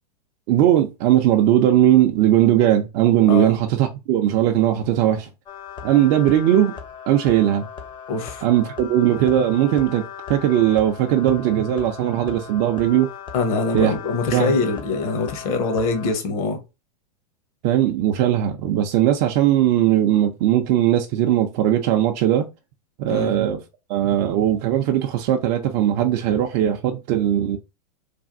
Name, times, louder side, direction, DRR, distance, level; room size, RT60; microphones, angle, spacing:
voice 1, 0.5-5.3 5.8-6.7 7.1-7.7 8.4-13.1 13.7-13.9 14.3-14.5 17.6-22.4 23.0-23.6 23.9-27.6, right 12 dB, 45° right, 0.5 m, -19 dB
sound 1, 5.5-16.1, left 8 dB, 20° left, 0.6 m, -38 dB
voice 2, 8.1-8.4 13.3-16.6 23.1-23.3, left 3 dB, 55° left, 1.0 m, -23 dB
3.3 x 2.3 x 2.6 m
hypercardioid pair, 110°, 21 cm